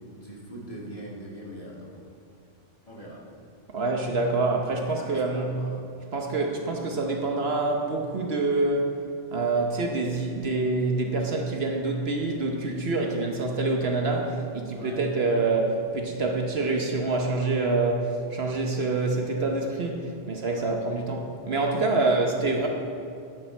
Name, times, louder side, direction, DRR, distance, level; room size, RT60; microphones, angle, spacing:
voice 1, 0.1-1.9 2.9-3.2 4.9-5.7 14.7-15.1 20.5-20.7 21.8-22.0, equal, 30° left, -4 dB, 2.1 m, -41 dB
voice 2, 3.7-5.5 6.1-8.9 9.3-22.7, right 3 dB, 60° right, 2 dB, 1.1 m, -26 dB
10.5 x 10.0 x 4.3 m, 2.5 s
omnidirectional pair, 1.3 m